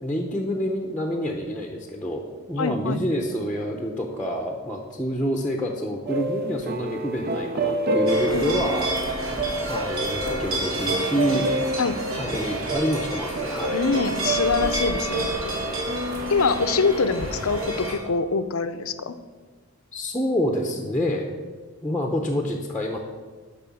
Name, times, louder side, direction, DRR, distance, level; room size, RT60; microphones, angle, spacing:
voice 1, 0.0-8.9 9.6-11.5 12.1-13.8 19.9-21.3 21.8-23.0, equal, 5° left, 1 dB, 0.8 m, -27 dB
voice 2, 2.6-3.0 8.3-8.5 11.8-12.0 13.7-15.3 16.3-19.2, left 4 dB, 70° left, 11 dB, 0.6 m, -24 dB
sound 1, 6.1-17.1, right 2 dB, 45° right, 0.6 m, -29 dB
sound 2, 8.1-18.0, right 1 dB, 65° right, 2.6 m, -29 dB
11.0 x 5.6 x 7.1 m, 1.4 s
head